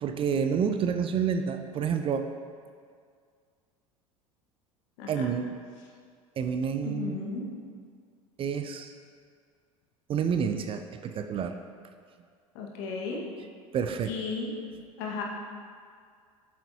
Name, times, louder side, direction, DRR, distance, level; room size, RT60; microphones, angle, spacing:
voice 1, 0.0-2.3 5.1-5.6 6.4-7.2 8.4-8.9 10.1-11.6 13.7-14.1, right 7 dB, 30° right, 7 dB, 0.5 m, -29 dB
voice 2, 5.0-5.3 6.8-7.5 12.5-13.2 14.0-14.5 15.0-15.2, left 4 dB, 55° left, -1 dB, 1.5 m, -34 dB
8.2 x 7.7 x 2.8 m, 2.1 s
figure-of-eight pair, 75°, 18 cm